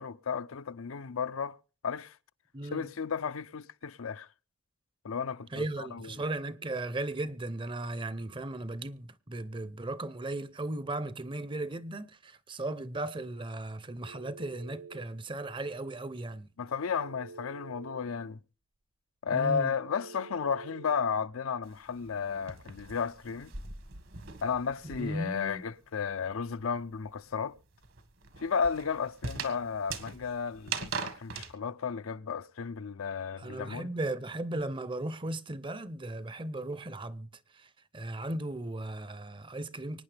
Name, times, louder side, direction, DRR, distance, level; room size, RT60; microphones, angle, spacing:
voice 1, 0.0-1.6 1.8-2.2 2.6-4.3 5.0-6.1 16.6-18.4 19.2-23.5 24.4-27.5 28.4-33.9, left 6 dB, 75° left, 0.6 m, -33 dB
voice 2, 2.5-2.9 5.5-16.5 19.3-19.7 25.0-25.6 33.4-37.3 37.5-40.0, right 2 dB, 25° right, 0.6 m, -36 dB
Telephone, 14.0-15.1 17.0-18.0 19.9-21.0, right 4 dB, 85° right, 1.0 m, -47 dB
sound 1, 21.6-25.4 25.7-31.5, right 5 dB, 70° right, 1.7 m, -41 dB
25.0 x 9.6 x 3.4 m
head